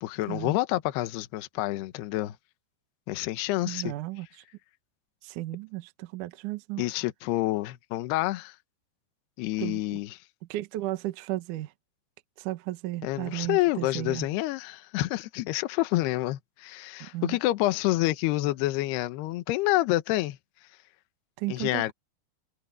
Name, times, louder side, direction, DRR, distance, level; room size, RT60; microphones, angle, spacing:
voice 1, 0.0-2.4 3.1-3.9 6.8-8.6 9.4-10.2 13.0-20.4 21.5-21.9, left 17 dB, 70° left, 2.8 m, -28 dB
voice 2, 3.7-4.4 5.2-6.8 9.6-10.0 10.5-11.7 12.4-14.3 17.0-17.4 21.4-21.9, right 16 dB, 85° right, 1.8 m, -34 dB
omnidirectional pair, 5.3 m